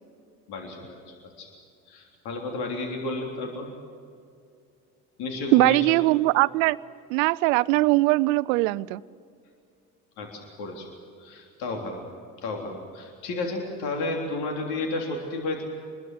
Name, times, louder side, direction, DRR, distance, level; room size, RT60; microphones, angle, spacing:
voice 1, 0.5-1.5 1.9-3.7 5.2-6.0 10.2-10.9 11.2-12.0 12.4-15.6, left 2 dB, 60° left, 2 dB, 3.5 m, -32 dB
voice 2, 5.5-6.8 7.1-9.0, right 21 dB, 65° right, 21 dB, 0.6 m, -21 dB
26.5 x 21.0 x 7.7 m, 2.4 s
figure-of-eight pair, 55°, 43 cm